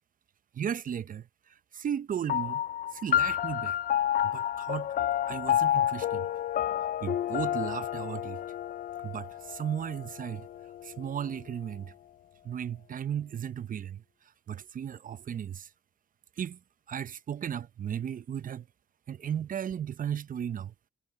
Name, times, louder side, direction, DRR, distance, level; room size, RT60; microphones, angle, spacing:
voice 1, 0.5-2.6 2.9-3.8 4.2-4.9 5.3-6.3 7.0-8.4 9.0-10.5 10.8-11.9 12.4-14.0 14.5-15.7 16.4-16.6 16.9-18.7 19.1-20.9, right 9 dB, 45° right, 0.6 m, -35 dB
sound 1, 2.3-11.1, left 11 dB, 45° left, 0.4 m, -30 dB
cardioid pair, 90°, 20 cm